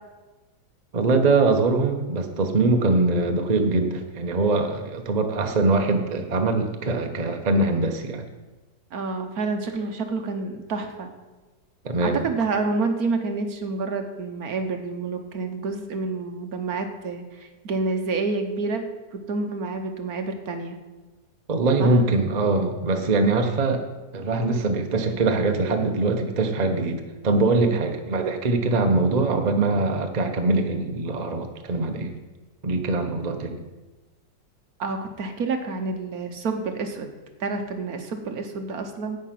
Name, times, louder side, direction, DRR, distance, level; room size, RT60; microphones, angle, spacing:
voice 1, 0.9-8.3 11.8-12.2 21.5-23.8 24.1-32.1 32.6-33.6, right 3 dB, 35° right, 5 dB, 0.8 m, -22 dB
voice 2, 8.9-11.1 12.0-18.8 19.1-20.8 21.8-21.9 34.8-37.1 37.4-39.2, right 3 dB, 60° right, 6 dB, 1.4 m, -28 dB
10.5 x 8.7 x 5.8 m, 1.2 s
omnidirectional pair, 1.9 m